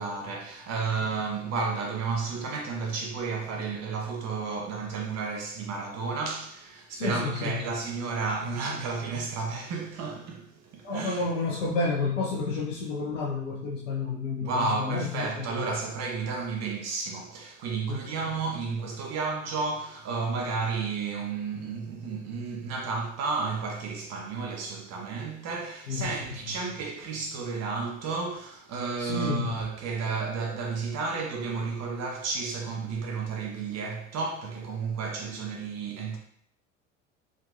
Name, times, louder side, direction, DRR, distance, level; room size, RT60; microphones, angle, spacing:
voice 1, 0.0-11.2 14.4-36.2, right 4 dB, 45° right, 1.2 m, -32 dB
voice 2, 6.9-7.6 10.8-15.7 17.9-18.0 25.9-26.6 29.0-29.5, left 4 dB, 75° left, 1.2 m, -30 dB
5.1 x 3.8 x 2.7 m
figure-of-eight pair, 65°, 38 cm